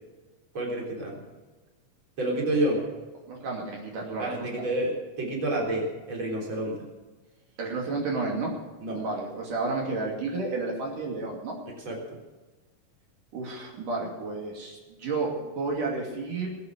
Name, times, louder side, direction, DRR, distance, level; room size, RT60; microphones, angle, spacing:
voice 1, 0.5-1.2 2.2-2.8 4.2-6.9 8.8-9.0 11.7-12.2, right 1 dB, 35° right, -1 dB, 4.3 m, -29 dB
voice 2, 3.3-4.5 7.6-8.5 8.9-11.6 13.3-16.5, right 3 dB, 75° right, -2 dB, 4.2 m, -31 dB
20.5 x 8.8 x 6.2 m, 1.2 s
omnidirectional pair, 3.7 m